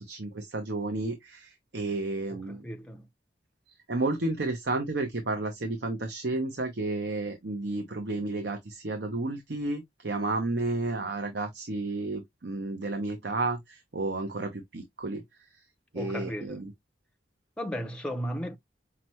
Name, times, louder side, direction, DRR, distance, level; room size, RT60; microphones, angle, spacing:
voice 1, 0.1-2.6 3.9-15.2 15.9-16.7, right 2 dB, 65° right, 0.8 m, -32 dB
voice 2, 2.3-3.1 15.9-16.6 17.6-18.6, equal, 5° left, 0.5 m, -35 dB
5.8 x 2.2 x 3.0 m
head